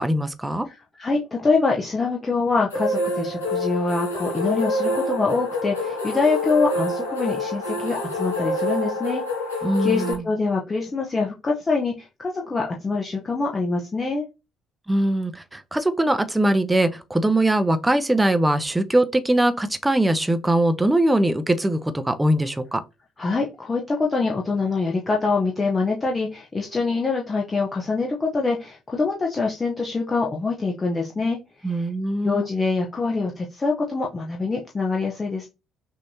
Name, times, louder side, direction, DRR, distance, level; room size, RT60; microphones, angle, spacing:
voice 1, 0.0-0.7 9.6-10.3 14.9-22.8 31.6-32.4, right 1 dB, 10° right, 0.6 m, -21 dB
voice 2, 0.7-9.2 9.8-14.3 23.2-31.4 32.2-35.5, left 4 dB, 25° left, 0.9 m, -24 dB
sound 1, 2.7-10.1, left 1 dB, 75° left, 1.2 m, -26 dB
6.1 x 2.7 x 2.9 m
figure-of-eight pair, 45°, 0 cm